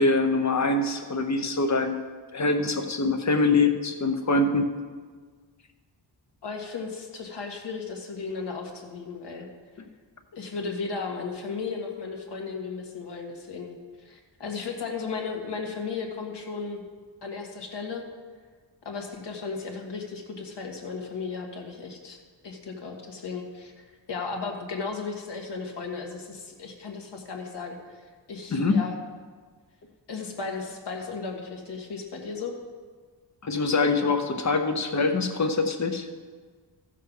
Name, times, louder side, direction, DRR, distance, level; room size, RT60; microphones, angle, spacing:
voice 1, 0.0-2.0 2.3-4.7 28.5-28.8 33.4-36.1, left 3 dB, 40° left, 6 dB, 0.9 m, -24 dB
voice 2, 6.4-9.5 10.3-16.8 17.2-18.0 18.9-22.2 22.4-28.0 28.3-29.0 30.1-32.5, left 4 dB, 65° left, 1 dB, 1.7 m, -35 dB
14.0 x 6.7 x 5.4 m, 1.5 s
wide cardioid pair, 180°, 45 cm